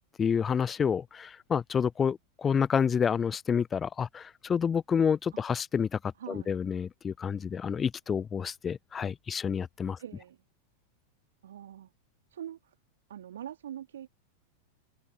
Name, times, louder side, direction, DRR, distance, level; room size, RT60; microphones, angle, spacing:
voice 1, 0.2-10.0, left 7 dB, 20° left, 0.4 m, -29 dB
voice 2, 6.2-6.5 10.0-10.4 11.4-11.9 12.3-12.7 13.1-14.1, right 10 dB, 60° right, 2.4 m, -43 dB
figure-of-eight pair, 90°, 0 cm